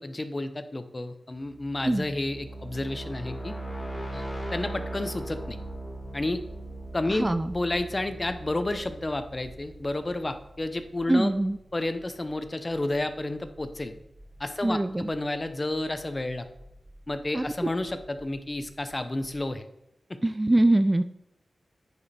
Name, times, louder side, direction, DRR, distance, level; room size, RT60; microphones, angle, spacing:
voice 1, 0.0-3.5 4.1-4.2 4.5-5.6 6.1-6.4 6.9-11.3 11.7-13.9 14.4-16.5 17.1-19.6, left 2 dB, 30° left, 9 dB, 0.8 m, -31 dB
sound 1, 1.5-10.3, right 1 dB, 5° left, 3.4 m, -39 dB
sound 2, 5.2-19.5, equal, 40° right, 1.2 m, -52 dB
voice 2, 7.1-7.5 11.1-11.6 14.6-15.1 17.3-17.7 20.2-21.0, right 1 dB, 20° right, 11 dB, 0.4 m, -23 dB
9.5 x 5.1 x 4.3 m, 0.81 s
wide cardioid pair, 80°, 0 cm